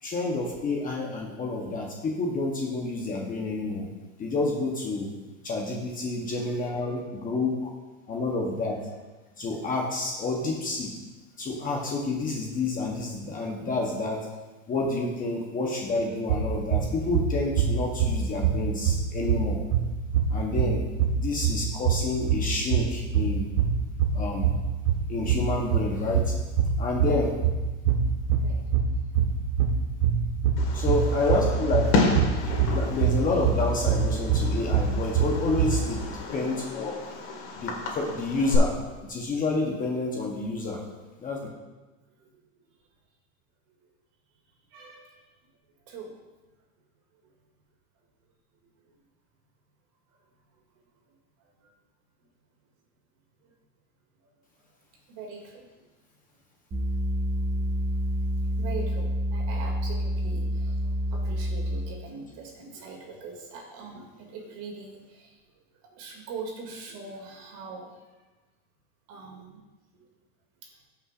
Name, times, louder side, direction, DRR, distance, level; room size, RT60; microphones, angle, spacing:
voice 1, 0.0-3.9 4.2-5.1 5.4-7.7 8.1-8.8 9.4-11.0 11.4-14.2 14.7-19.6 20.3-20.8 21.2-23.5 24.1-24.5 25.1-26.4 26.8-27.4 30.7-31.9 32.6-36.0 36.3-37.1 37.5-38.7 39.0-40.8 41.2-41.5, left 3 dB, 20° left, 0 dB, 0.9 m, -29 dB
voice 2, 6.3-6.6 28.4-28.6 31.2-31.3 31.6-31.7 36.4-36.6 42.2-42.3 44.7-45.3 45.8-46.1 47.2-47.3 48.6-49.0 50.5-50.6 51.4-51.7 52.2-52.3 53.4-53.5 54.2-54.3 55.1-55.8 57.2-57.6 58.4-65.4 65.8-68.1 69.1-69.6 69.9-70.1 70.6-70.7, right 4 dB, 50° right, 0 dB, 2.4 m, -43 dB
sound 1, 16.3-35.9, right 6 dB, 85° right, 1.2 m, -25 dB
Fireworks, 30.6-38.6, left 3 dB, 65° left, 2.1 m, -31 dB
sound 2, 56.7-62.0, equal, 20° right, 1.6 m, -28 dB
15.5 x 5.7 x 2.5 m, 1.2 s
supercardioid pair, 145°, 42 cm